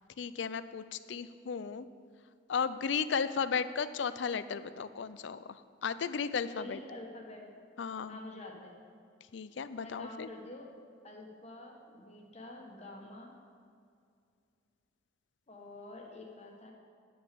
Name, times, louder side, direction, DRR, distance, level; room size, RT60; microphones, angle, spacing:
voice 1, 0.2-1.9 2.5-6.8 7.8-8.2 9.3-10.3, left 6 dB, 70° left, 14 dB, 0.4 m, -35 dB
voice 2, 6.5-7.5 8.1-8.8 9.8-10.7 11.0-13.3 15.5-16.7, left 1 dB, 35° left, 0 dB, 1.5 m, -47 dB
10.0 x 6.0 x 6.9 m, 2.3 s
head